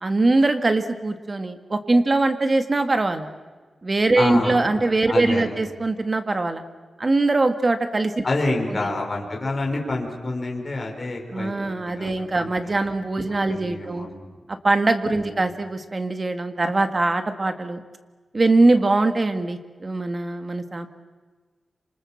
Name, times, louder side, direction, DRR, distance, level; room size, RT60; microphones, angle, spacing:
voice 1, 0.0-3.3 3.8-6.6 7.0-8.2 8.7-8.8 11.3-14.1 14.5-17.8 18.3-20.9, right 2 dB, 30° right, 8 dB, 1.9 m, -22 dB
voice 2, 4.2-4.8 5.1-5.5 8.2-11.5 11.9-12.8 13.3-14.3 15.1-15.3, left 2 dB, 30° left, 0 dB, 4.7 m, -28 dB
27.5 x 27.0 x 7.3 m, 1.4 s
wide cardioid pair, 135°, 0 cm